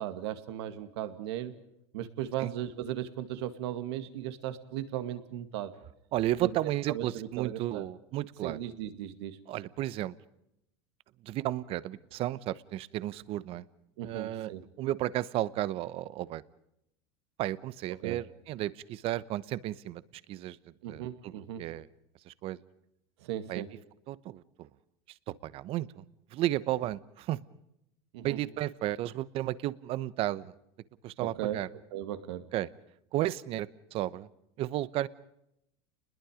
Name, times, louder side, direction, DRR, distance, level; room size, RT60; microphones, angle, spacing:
voice 1, 0.0-1.5 1.9-5.8 6.4-7.9 8.4-9.4 14.0-14.6 18.0-18.2 20.8-21.7 23.2-23.7 28.1-28.4 31.2-31.6 31.9-32.5, right 11 dB, 80° right, 10 dB, 2.2 m, -37 dB
voice 2, 6.1-8.6 9.5-10.1 11.2-13.6 14.0-14.5 14.8-16.4 17.4-20.0 20.3-20.6 20.9-21.9 22.3-22.6 23.5-23.6 24.1-24.7 25.3-26.0 26.3-27.4 28.2-30.5 31.0-31.7 32.5-32.7 33.1-34.3 34.6-35.1, right 14 dB, 45° right, 18 dB, 1.0 m, -33 dB
29.5 x 21.0 x 5.1 m, 0.80 s
supercardioid pair, 140°, 14 cm